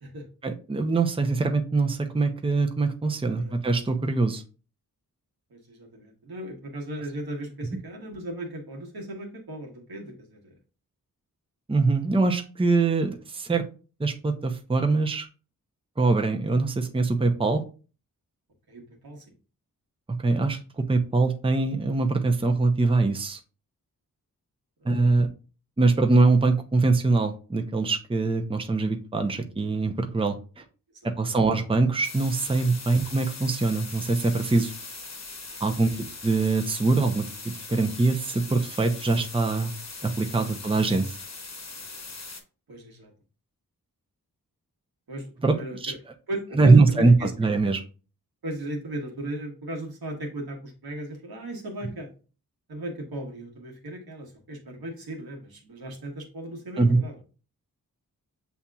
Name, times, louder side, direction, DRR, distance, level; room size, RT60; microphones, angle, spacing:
voice 1, 0.4-4.4 11.7-13.6 14.0-15.3 16.0-17.6 20.2-23.4 24.8-25.3 25.8-30.6 31.0-34.7 35.6-35.9 36.2-37.3 37.7-39.7 40.0-41.2 45.4-45.9 46.6-47.8 56.8-57.0, right 3 dB, 15° right, 4 dB, 0.6 m, -23 dB
voice 2, 3.2-3.5 5.5-10.5 18.7-19.2 24.8-24.9 31.0-31.4 32.9-33.0 35.8-36.0 40.5-40.6 42.7-43.1 45.1-46.0 46.3-47.3 48.4-52.1 52.7-57.1, right 1 dB, 85° right, 0 dB, 1.3 m, -37 dB
sound 1, 32.0-42.4, left 3 dB, 45° left, 1.0 m, -40 dB
7.0 x 2.8 x 2.3 m, 0.35 s
cardioid pair, 50°, 36 cm